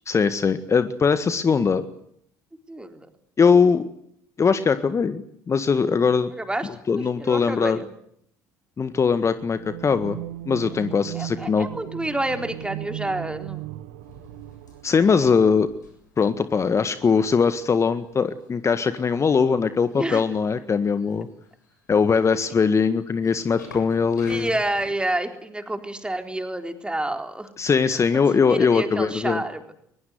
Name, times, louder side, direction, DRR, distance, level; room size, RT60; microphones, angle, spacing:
voice 1, 0.1-1.9 3.4-3.9 4.4-6.3 6.9-7.8 8.8-10.2 10.5-11.7 14.8-15.7 16.2-21.3 21.9-24.5 27.6-29.4, left 5 dB, 30° left, 11 dB, 1.7 m, -21 dB
voice 2, 2.7-3.1 6.3-7.9 11.1-13.7 15.2-15.3 20.0-20.3 24.3-27.5 28.5-29.7, right 1 dB, 10° right, 6 dB, 3.9 m, -29 dB
sound 1, 9.5-15.5, right 16 dB, 70° right, 1.3 m, -37 dB
sound 2, 14.0-24.9, left 3 dB, 85° left, 7.4 m, -50 dB
22.5 x 21.5 x 9.6 m, 0.69 s
figure-of-eight pair, 60°, 9 cm